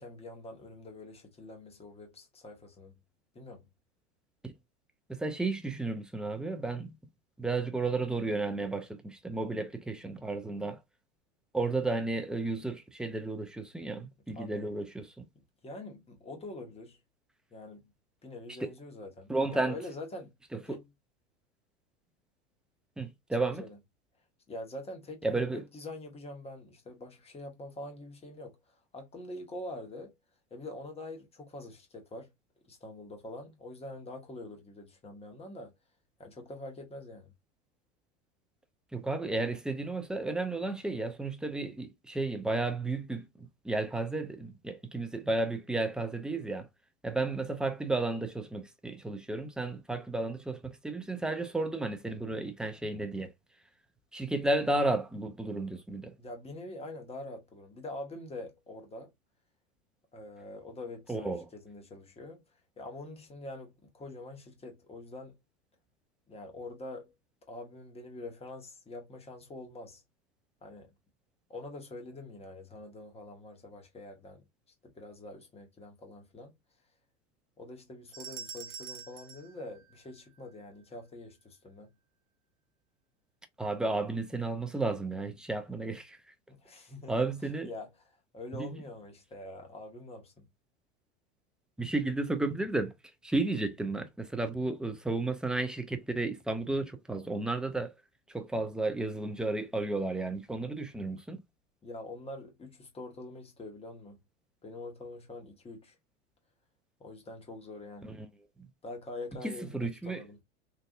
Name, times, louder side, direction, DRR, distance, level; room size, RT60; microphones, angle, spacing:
voice 1, 0.0-3.0 3.3-3.7 14.3-14.7 15.6-17.0 17.5-17.9 18.2-20.3 20.6-20.9 23.4-23.8 24.5-30.1 30.5-32.3 32.6-35.7 36.2-37.3 54.5-54.6 56.2-59.1 60.1-62.4 62.8-65.3 66.3-67.1 67.5-70.0 70.6-70.9 71.5-74.4 74.8-76.5 77.6-81.9 86.5-87.3 87.6-87.9 88.3-90.5 101.8-104.2 104.6-106.0 107.0-108.1 108.8-110.4, left 2 dB, 15° left, 1.3 m, -45 dB
voice 2, 5.1-6.9 7.4-10.8 11.5-15.2 18.6-18.7 19.3-19.8 20.5-20.8 23.0-23.6 25.2-25.6 38.9-46.7 47.0-53.3 54.1-56.1 61.1-61.4 83.6-86.2 87.1-87.7 88.5-88.7 91.8-92.9 93.2-97.9 98.3-101.4 108.0-108.2 109.3-110.2, right 2 dB, ahead, 0.4 m, -33 dB
sound 1, 78.1-80.5, right 6 dB, 35° right, 0.9 m, -46 dB
3.4 x 2.6 x 2.4 m
hypercardioid pair, 90°, 35 cm